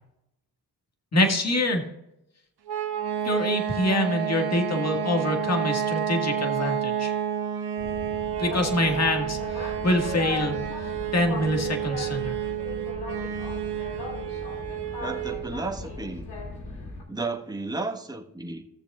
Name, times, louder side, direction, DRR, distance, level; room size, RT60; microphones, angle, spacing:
voice 1, 1.1-1.8 3.2-7.1 8.4-10.6 11.1-12.4, left 1 dB, 40° left, 1.9 m, -25 dB
sound 1, 2.7-15.5, right 9 dB, 75° right, 1.3 m, -30 dB
Boat Water vehicle, 7.8-17.0, left 3 dB, 85° left, 2.8 m, -37 dB
voice 2, 15.0-16.3 17.1-18.6, right 3 dB, 10° right, 1.4 m, -33 dB
18.0 x 7.0 x 2.5 m
supercardioid pair, 55°, 40 cm